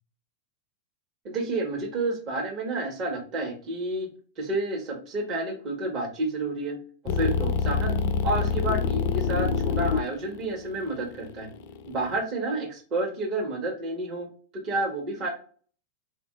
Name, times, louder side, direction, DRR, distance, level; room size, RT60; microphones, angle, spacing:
voice 1, 1.2-4.1 4.4-6.8 7.0-8.0 8.2-11.5 11.9-14.3 14.5-15.3, right 2 dB, 35° right, 0 dB, 1.2 m, -30 dB
sound 1, 7.1-12.2, left 5 dB, 50° left, 0.3 m, -26 dB
3.8 x 2.5 x 2.3 m, 0.42 s
figure-of-eight pair, 90°, 0 cm